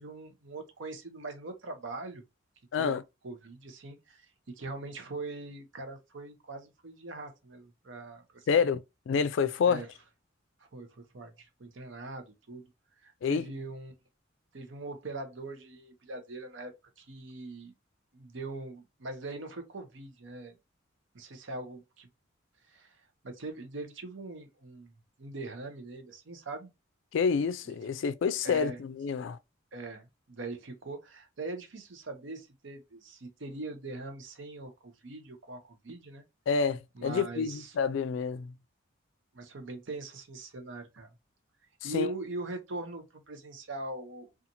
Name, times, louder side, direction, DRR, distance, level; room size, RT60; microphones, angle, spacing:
voice 1, 0.0-2.2 2.8-2.9 3.2-4.3 4.6-8.5 9.6-9.9 10.7-12.7 13.0-13.9 14.5-17.7 18.1-20.5 21.1-22.1 22.7-23.0 23.2-24.9 25.2-26.7 27.7-27.8 28.4-28.8 29.7-36.2 37.0-37.8 39.3-41.1 41.8-44.3, right 2 dB, 75° right, 0.7 m, -41 dB
voice 2, 2.7-3.0 8.5-9.8 13.2-13.4 27.1-29.4 36.5-38.5 41.9-42.1, left 6 dB, 75° left, 0.3 m, -28 dB
2.6 x 2.4 x 2.7 m
head